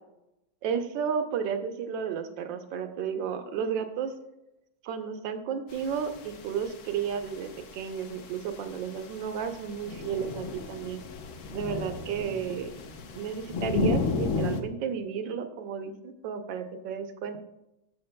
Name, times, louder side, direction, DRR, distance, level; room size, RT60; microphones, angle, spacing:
voice 1, 0.6-4.1 4.8-11.0 11.5-12.7 13.1-17.4, right 7 dB, 70° right, 7 dB, 1.4 m, -33 dB
sound 1, 5.7-14.6, left 3 dB, 70° left, 0.7 m, -34 dB
14.5 x 6.0 x 2.2 m, 0.88 s
omnidirectional pair, 2.2 m